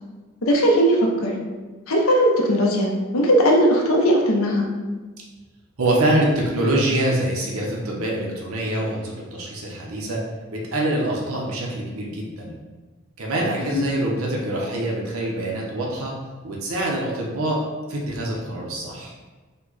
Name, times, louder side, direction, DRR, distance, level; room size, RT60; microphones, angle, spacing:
voice 1, 0.4-1.3 1.9-4.7 13.6-13.9, equal, 80° left, -1 dB, 0.8 m, -18 dB
voice 2, 5.8-10.2 10.5-12.5 13.2-16.1 16.4-19.1, right 1 dB, 85° right, -3 dB, 0.9 m, -25 dB
5.5 x 2.3 x 4.0 m, 1.3 s
head